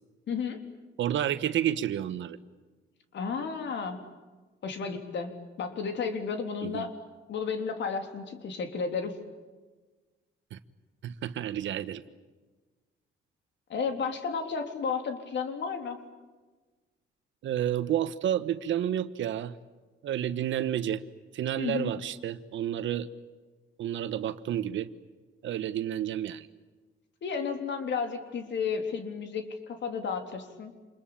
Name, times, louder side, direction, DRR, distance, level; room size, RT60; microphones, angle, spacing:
voice 1, 0.3-0.6 3.1-4.0 4.6-6.9 7.3-9.1 13.7-16.0 21.6-21.9 27.2-30.7, left 5 dB, 65° left, 6 dB, 3.6 m, -32 dB
voice 2, 1.0-2.4 6.6-6.9 10.5-10.6 11.0-12.0 17.4-19.5 20.0-21.0 21.3-23.1 23.8-24.9 25.4-26.5, right 10 dB, 70° right, 13 dB, 1.3 m, -30 dB
27.5 x 22.0 x 8.8 m, 1.3 s
cardioid pair, 90°, 20 cm